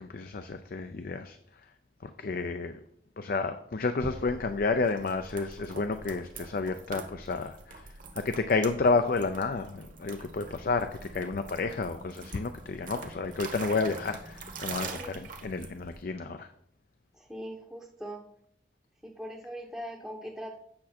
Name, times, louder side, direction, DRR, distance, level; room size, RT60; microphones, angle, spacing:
voice 1, 0.0-1.7 2.0-2.8 3.2-16.5, left 3 dB, 50° left, 8 dB, 0.5 m, -31 dB
sound 1, 4.0-16.0, right 3 dB, 45° right, 1.2 m, -44 dB
voice 2, 14.9-15.2 17.1-18.3 19.0-20.6, equal, 5° right, -1 dB, 0.8 m, -41 dB
8.7 x 6.2 x 4.3 m, 0.68 s
head